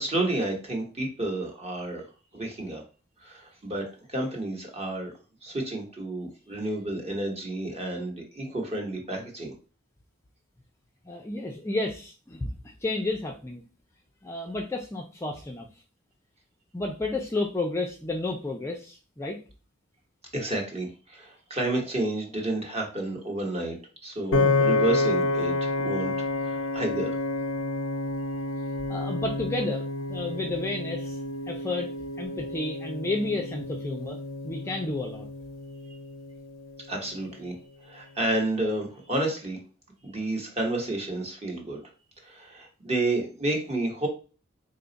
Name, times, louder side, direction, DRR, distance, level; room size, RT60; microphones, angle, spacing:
voice 1, 0.0-2.0 2.3-2.8 3.2-3.8 4.1-5.1 5.4-9.5 20.3-23.8 24.0-27.1 35.8-35.9 36.9-37.5 37.8-39.6 40.0-41.8 42.2-44.1, right 2 dB, 30° right, 1 dB, 1.1 m, -30 dB
voice 2, 11.1-12.5 12.8-13.6 14.2-15.7 16.7-19.4 28.9-31.2 31.5-31.9 32.2-34.2 34.4-35.3, left 2 dB, 15° left, 1 dB, 0.4 m, -31 dB
Piano, 24.3-36.6, left 2 dB, 70° left, 0.5 m, -29 dB
4.1 x 2.3 x 3.9 m, 0.34 s
head